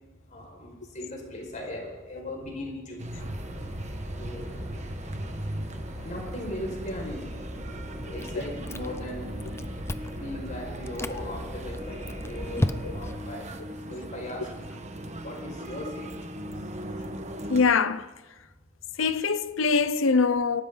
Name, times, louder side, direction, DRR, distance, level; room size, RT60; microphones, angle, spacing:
voice 1, 0.3-3.0 4.2-4.6 6.0-9.3 10.1-13.5 13.9-14.5 15.2-16.2, left 1 dB, 40° left, 5.4 m, -38 dB
sound 1, 3.0-17.6, right 1 dB, 35° right, 1.2 m, -39 dB
sound 2, 3.1-13.2, equal, 20° right, 6.3 m, -39 dB
Chewing mastication, 8.2-9.1 9.4-10.2 10.8-11.2 11.7-13.2, left 1 dB, 15° left, 0.6 m, -32 dB
voice 2, 17.5-18.1 19.0-20.6, left 4 dB, 90° left, 0.7 m, -23 dB
26.5 x 12.5 x 3.9 m
head